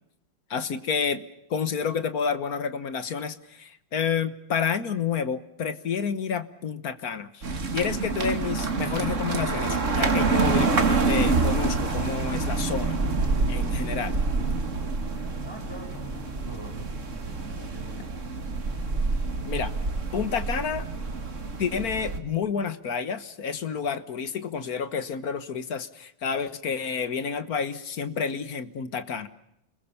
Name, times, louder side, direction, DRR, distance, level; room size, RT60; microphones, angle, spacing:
voice 1, 0.5-1.2 1.5-7.4 7.7-13.0 13.5-14.2 19.4-19.7 20.1-20.9 21.6-29.3, left 6 dB, 50° left, 13 dB, 1.5 m, -29 dB
sound 1, 7.4-22.2, right 3 dB, 40° right, 2.2 m, -27 dB
voice 2, 15.4-17.9, right 1 dB, 10° right, 2 dB, 7.3 m, -44 dB
29.5 x 21.5 x 7.0 m, 0.78 s
omnidirectional pair, 2.2 m